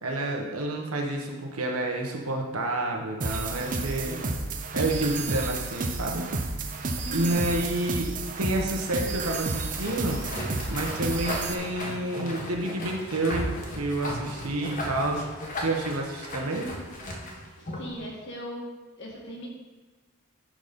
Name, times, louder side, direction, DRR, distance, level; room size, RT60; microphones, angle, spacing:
voice 1, 0.0-4.2 4.7-6.3 7.1-10.2 10.7-15.3 15.6-16.7, right 1 dB, 90° right, 1 dB, 1.4 m, -29 dB
sound 1, 3.2-11.5, right 3 dB, 40° right, 0.7 m, -31 dB
voice 2, 7.0-7.4 17.6-18.7 19.0-19.5, right 1 dB, 55° left, -1 dB, 1.9 m, -38 dB
sound 2, 9.7-17.9, left 1 dB, 40° left, 1.5 m, -35 dB
11.0 x 4.2 x 5.3 m, 1.3 s
head